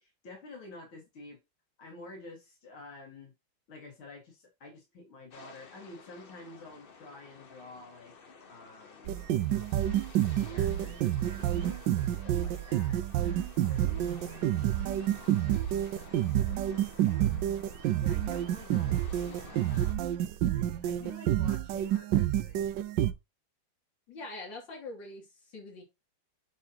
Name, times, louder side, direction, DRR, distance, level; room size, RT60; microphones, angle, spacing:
voice 1, 0.0-1.4 1.8-3.3 3.7-8.1 8.5-9.1 10.4-14.6 15.0-17.2 18.0-19.9 20.1-23.1, left 3 dB, 85° left, 3.0 m, -50 dB
sound 1, 5.3-19.9, left 5 dB, 40° left, 0.9 m, -53 dB
sound 2, 9.1-23.1, right 12 dB, 75° right, 1.2 m, -29 dB
voice 2, 24.1-25.8, left 2 dB, 65° left, 3.3 m, -43 dB
10.0 x 4.1 x 2.8 m
omnidirectional pair, 2.2 m